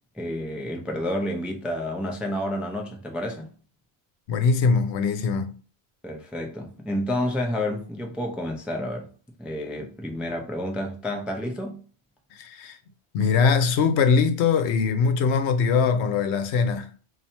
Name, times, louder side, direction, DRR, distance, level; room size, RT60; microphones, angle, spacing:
voice 1, 0.1-3.5 6.0-9.1 9.4-11.8, left 1 dB, ahead, 0.3 m, -30 dB
voice 2, 4.3-5.5 12.3-12.8 13.1-16.9, left 5 dB, 90° left, 0.9 m, -22 dB
2.8 x 2.6 x 4.3 m
omnidirectional pair, 1.1 m